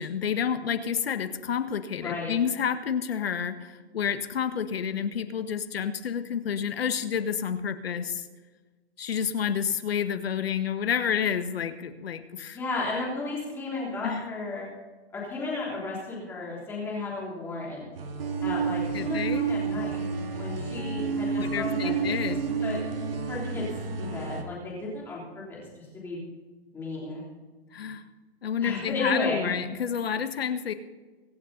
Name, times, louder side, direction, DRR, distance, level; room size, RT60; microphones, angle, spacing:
voice 1, 0.0-8.3 9.0-12.6 14.0-14.2 18.9-19.5 21.3-22.4 27.7-28.1 28.4-30.7, left 7 dB, 65° left, 9 dB, 1.7 m, -29 dB
voice 2, 2.0-2.3 12.5-14.7 15.1-17.9 18.4-20.0 20.3-22.1 22.6-22.8 23.3-23.6 24.0-26.2 26.7-27.2 28.6-29.5, left 3 dB, 5° left, -4 dB, 3.3 m, -33 dB
sound 1, 17.9-24.4, right 5 dB, 60° right, 2.3 m, -30 dB
24.5 x 8.6 x 4.1 m, 1.3 s
hypercardioid pair, 180°, 33 cm